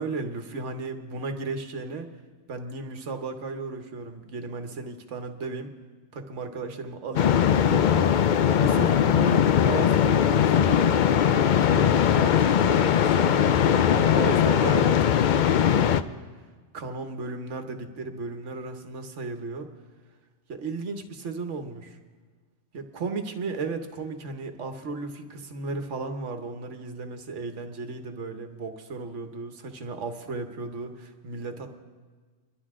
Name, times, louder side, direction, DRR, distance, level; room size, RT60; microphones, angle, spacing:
voice 1, 0.0-2.1 2.5-5.7 6.1-8.3 8.6-16.0 16.7-19.7 20.5-22.0 22.7-31.8, right 3 dB, 75° right, 6 dB, 1.4 m, -35 dB
sound 1, 7.2-16.0, left 9 dB, 60° left, 0.5 m, -20 dB
25.0 x 11.5 x 3.7 m, 1.5 s
omnidirectional pair, 1.2 m